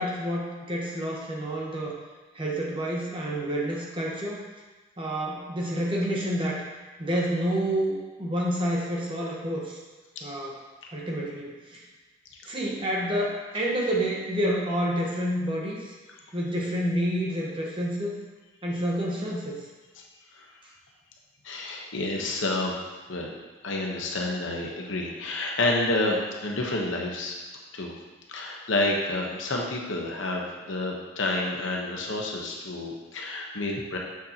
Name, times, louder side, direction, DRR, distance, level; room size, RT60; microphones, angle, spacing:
voice 1, 0.0-1.9 2.3-4.4 5.0-6.6 7.0-9.8 10.2-10.6 10.9-11.8 12.4-15.9 16.3-18.2 18.6-19.6, equal, 25° right, -3 dB, 1.0 m, -29 dB
voice 2, 21.4-23.3 23.6-27.4 27.7-27.9 28.3-34.0, left 2 dB, 70° left, -1 dB, 1.0 m, -29 dB
7.3 x 6.4 x 2.9 m, 1.2 s
head